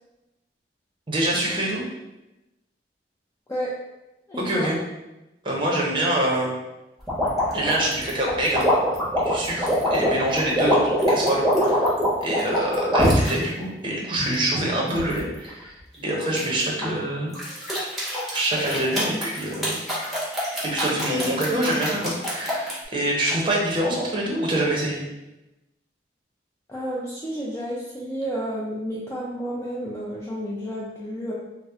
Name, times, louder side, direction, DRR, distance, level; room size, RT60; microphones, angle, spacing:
voice 1, 1.1-1.8 4.4-4.8 5.4-6.6 7.5-8.7 9.2-11.9 12.2-17.3 18.3-19.8 20.6-25.0, right 1 dB, 30° right, -2 dB, 0.7 m, -25 dB
voice 2, 4.3-4.7 26.7-31.3, equal, 15° left, -6 dB, 0.4 m, -31 dB
sound 1, 7.1-13.3 13.9-15.2 16.3-16.9 17.3-22.8, equal, ahead, 0.9 m, -24 dB
2.8 x 2.0 x 3.5 m, 0.97 s
head